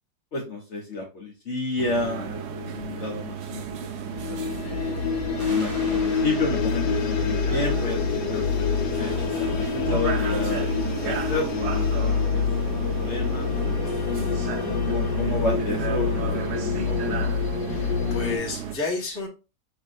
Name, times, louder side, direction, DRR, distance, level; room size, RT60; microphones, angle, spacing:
voice 1, 0.3-4.9 5.4-9.1 9.6-11.9 12.2-12.6 12.9-13.9 14.5-17.4, left 3 dB, 45° left, -2 dB, 1.3 m, -31 dB
sound 1, 1.8-18.8, right 8 dB, 90° right, 0.5 m, -34 dB
sound 2, 4.1-18.4, left 6 dB, 85° left, 1.4 m, -26 dB
sound 3, 5.4-8.8, right 2 dB, 70° right, 2.4 m, -44 dB
voice 2, 17.7-19.3, left 3 dB, 10° left, -3 dB, 1.2 m, -31 dB
5.9 x 3.0 x 2.6 m, 0.30 s
omnidirectional pair, 1.8 m